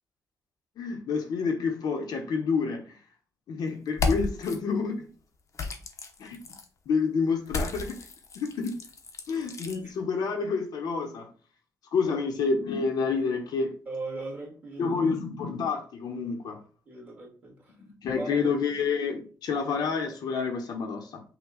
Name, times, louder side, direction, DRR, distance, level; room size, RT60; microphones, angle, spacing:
voice 1, 0.8-3.0 3.5-5.1 6.2-6.4 6.9-8.0 8.3-8.8 9.3-11.3 11.9-13.7 14.8-16.6 17.8-21.2, left 5 dB, 80° left, 0.9 m, -28 dB
sound 1, 3.9-4.6 5.5-6.7 7.5-9.8, left 3 dB, 50° left, 0.8 m, -33 dB
voice 2, 13.9-14.9 16.9-17.5 18.1-18.5, right 2 dB, 25° right, 1.8 m, -38 dB
5.9 x 2.3 x 3.8 m
wide cardioid pair, 140°, 7 cm